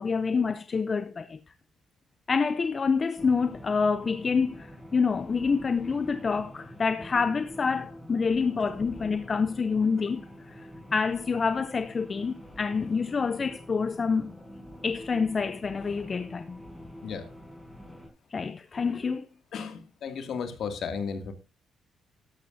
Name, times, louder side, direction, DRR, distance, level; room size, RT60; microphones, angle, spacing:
voice 1, 0.0-1.4 2.3-10.2 10.5-14.3 14.8-16.6 18.3-19.2, left 5 dB, 35° left, 0.7 m, -27 dB
sound 1, 3.2-18.1, equal, ahead, 5.5 m, -46 dB
voice 2, 19.5-21.3, left 6 dB, 65° left, 2.4 m, -34 dB
13.5 x 11.5 x 2.7 m
cardioid pair, 90°, 0 cm